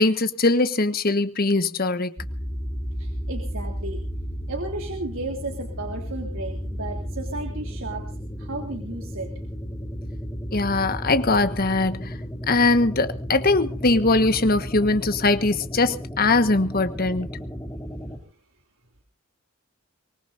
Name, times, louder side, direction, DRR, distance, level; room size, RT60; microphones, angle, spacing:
voice 1, 0.0-2.1 10.5-12.2 12.5-17.3, left 2 dB, 45° left, 1.4 m, -21 dB
sound 1, 2.2-18.2, equal, 15° left, 2.8 m, -33 dB
voice 2, 3.0-4.0 4.5-8.0 8.4-9.3, right 2 dB, 70° right, 3.2 m, -34 dB
24.5 x 20.0 x 2.6 m
head